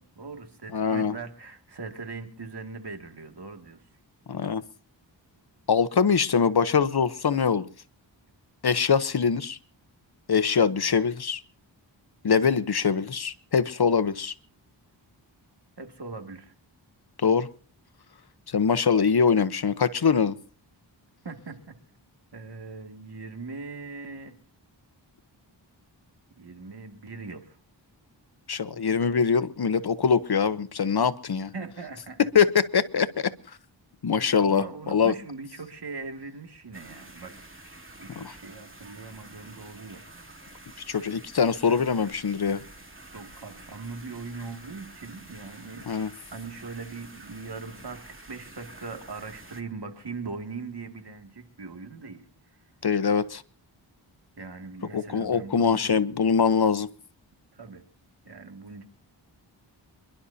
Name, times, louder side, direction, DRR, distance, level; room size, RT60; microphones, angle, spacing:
voice 1, 0.0-3.8 15.8-16.5 21.2-21.8 22.3-24.3 26.4-27.6 31.5-32.3 34.4-37.3 37.6-40.0 41.7-41.9 43.1-52.2 54.4-56.0 57.5-57.8 58.2-58.8, right 4 dB, 60° right, 5 dB, 2.4 m, -40 dB
voice 2, 0.7-1.1 4.3-4.6 5.7-7.7 8.6-9.6 10.3-11.4 12.2-14.3 17.2-17.5 18.5-20.4 28.5-31.5 32.3-33.3 34.0-35.1 38.1-38.3 40.9-42.6 45.9-46.1 52.8-53.4 54.9-56.9, left 6 dB, 55° left, 14 dB, 0.9 m, -23 dB
sound 1, 36.7-49.6, right 2 dB, 25° right, 2.6 m, -48 dB
27.5 x 11.5 x 2.8 m, 0.41 s
cardioid pair, 55°, 46 cm